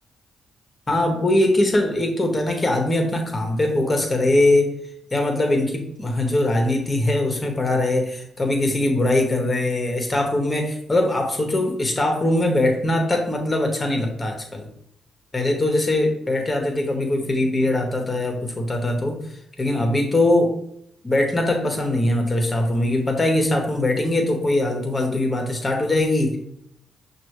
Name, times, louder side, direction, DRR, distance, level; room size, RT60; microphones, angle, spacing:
voice 1, 0.9-4.7 5.1-14.7 15.3-19.2 19.6-20.5 21.0-26.4, left 1 dB, 25° left, 3 dB, 1.5 m, -21 dB
6.0 x 2.8 x 3.1 m, 0.72 s
supercardioid pair, 50°, 0 cm